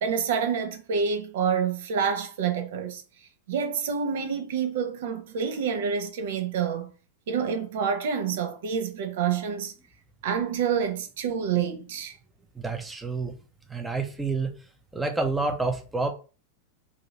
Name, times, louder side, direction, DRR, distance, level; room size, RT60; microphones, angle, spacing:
voice 1, 0.0-3.0 3.5-6.9 7.3-9.7 10.2-12.1, right 6 dB, 55° right, 0.8 m, -27 dB
voice 2, 12.5-13.3 13.7-14.5 14.9-16.1, right 3 dB, 10° right, 0.8 m, -28 dB
3.8 x 2.8 x 4.2 m
figure-of-eight pair, 90°, 0 cm